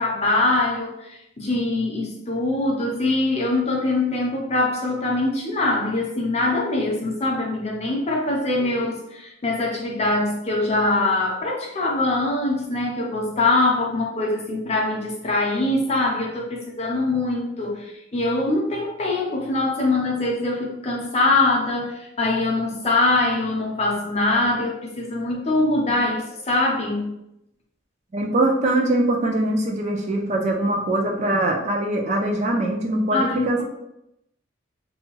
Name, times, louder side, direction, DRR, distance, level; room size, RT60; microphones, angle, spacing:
voice 1, 0.0-27.1 33.1-33.6, left 2 dB, 35° left, -1 dB, 0.6 m, -23 dB
voice 2, 28.1-33.6, right 1 dB, 35° right, 1 dB, 0.3 m, -22 dB
2.7 x 2.2 x 2.9 m, 0.84 s
head